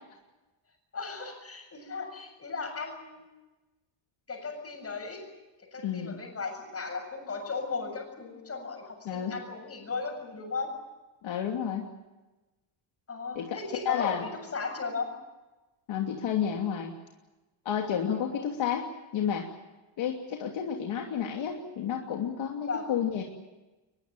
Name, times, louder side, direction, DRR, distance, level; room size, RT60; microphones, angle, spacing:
voice 1, 0.9-3.3 4.3-5.2 5.7-10.7 13.1-15.1 18.1-18.4 22.7-22.9, left 4 dB, 30° left, 4 dB, 7.4 m, -36 dB
voice 2, 5.8-6.2 9.0-9.3 11.2-11.9 13.3-13.6 13.8-14.3 15.9-16.9 17.6-18.9 19.1-19.5 20.0-23.2, left 8 dB, 65° left, 1 dB, 2.9 m, -31 dB
22.5 x 21.5 x 9.0 m, 1.1 s
cardioid pair, 150°, 50 cm